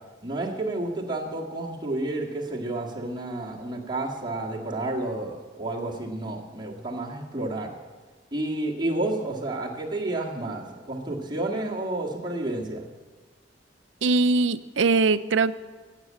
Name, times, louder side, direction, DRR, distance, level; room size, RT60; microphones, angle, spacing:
voice 1, 0.2-7.7 8.3-12.8, right 2 dB, 25° right, -4 dB, 1.9 m, -30 dB
voice 2, 14.0-15.5, right 3 dB, 85° right, 13 dB, 0.6 m, -21 dB
16.0 x 7.5 x 8.7 m, 1.3 s
head